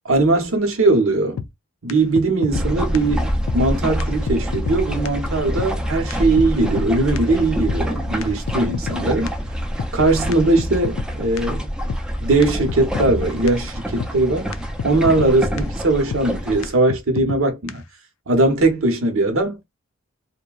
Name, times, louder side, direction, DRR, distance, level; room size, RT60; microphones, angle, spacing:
voice 1, 0.0-1.4 1.8-9.3 9.9-11.7 12.2-14.6 14.8-17.8 18.3-19.6, right 2 dB, 70° right, 0.9 m, -20 dB
sound 1, 1.4-1.5 1.9-2.7 2.9-3.0 3.5-3.6 4.0-4.1 4.3-4.8 5.0-5.1 5.6-5.7 6.1-6.2 6.4-6.9 7.2-7.3 7.7-7.8 8.2-9.0 9.3-9.4 9.8-9.9 10.3-10.4 10.6-11.1 11.4-11.5 11.9-12.0 12.4-12.5 12.7-13.2 13.5-13.6 14.0-14.1 14.5-14.6 14.8-15.3 15.6-15.7 16.1-16.2 16.6-16.7 16.9-17.4 17.7-17.8, left 6 dB, 70° left, 0.4 m, -28 dB
sound 2, 2.5-16.7, equal, 5° right, 0.4 m, -26 dB
2.7 x 2.1 x 2.3 m
head